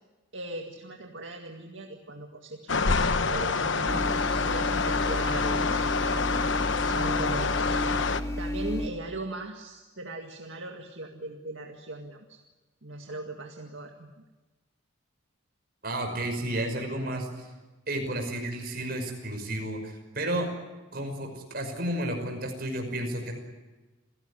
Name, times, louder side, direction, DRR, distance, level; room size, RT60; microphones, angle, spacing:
voice 1, 0.3-2.9 3.3-4.1 4.4-5.8 6.8-7.5 8.4-12.4 12.8-14.1, right 2 dB, 65° right, 3 dB, 2.0 m, -38 dB
sound 1, 2.7-8.2, left 4 dB, 60° left, 1.1 m, -27 dB
sound 2, 3.9-8.9, left 1 dB, 15° left, 1.7 m, -32 dB
voice 2, 15.8-17.5 17.9-20.5 20.9-23.3, right 1 dB, 45° right, 4 dB, 5.8 m, -32 dB
28.0 x 17.0 x 9.9 m, 1.2 s
head